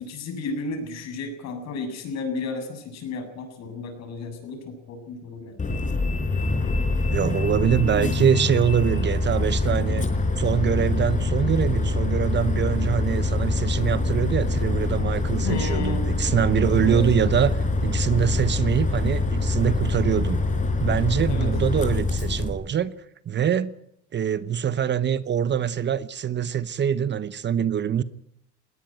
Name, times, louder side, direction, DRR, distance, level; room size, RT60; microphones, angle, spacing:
voice 1, 0.0-6.2 15.4-16.1 16.8-17.0 21.3-21.5, left 3 dB, 60° left, 7.6 m, -33 dB
Bus, 5.6-22.5, left 2 dB, 25° left, 4.9 m, -24 dB
voice 2, 7.1-10.1 10.4-20.4 20.8-22.9 23.3-23.7 24.1-28.0, right 8 dB, 35° right, 1.0 m, -24 dB
20.5 x 17.5 x 9.0 m
cardioid pair, 130°, 31 cm